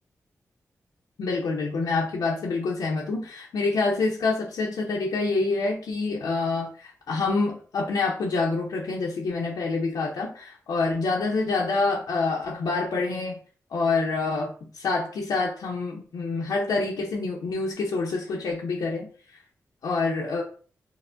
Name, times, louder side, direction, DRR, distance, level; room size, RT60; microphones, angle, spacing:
voice 1, 1.2-13.4 13.7-19.1 19.8-20.4, left 3 dB, 85° left, -2 dB, 0.6 m, -27 dB
4.3 x 2.0 x 2.5 m, 0.42 s
cardioid pair, 45°, 6 cm